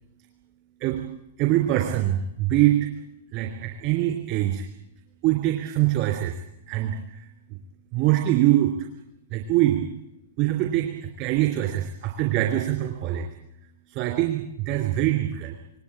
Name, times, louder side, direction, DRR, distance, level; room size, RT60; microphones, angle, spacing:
voice 1, 1.4-2.9 3.3-4.6 5.2-6.3 6.7-7.0 7.9-8.7 9.3-9.8 10.4-10.9 11.2-13.3 13.9-15.5, right 14 dB, 40° right, 3 dB, 3.2 m, -23 dB
27.5 x 19.0 x 8.7 m, 0.85 s
figure-of-eight pair, 105°, 0 cm